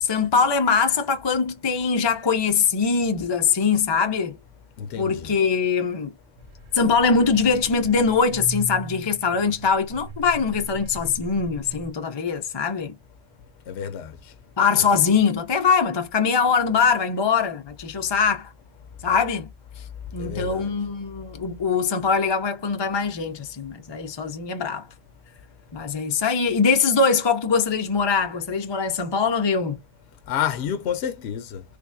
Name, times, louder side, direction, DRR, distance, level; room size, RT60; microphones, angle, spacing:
voice 1, 0.0-4.3 5.0-6.1 6.7-12.9 14.6-18.5 19.0-19.5 20.1-24.9 25.7-29.8, left 5 dB, 40° left, 0.4 m, -22 dB
voice 2, 4.8-5.3 13.7-14.3 20.2-20.7 30.3-31.6, left 9 dB, 70° left, 0.8 m, -29 dB
sound 1, 6.4-11.9, right 3 dB, 50° right, 0.9 m, -39 dB
3.5 x 3.3 x 2.5 m
omnidirectional pair, 1.2 m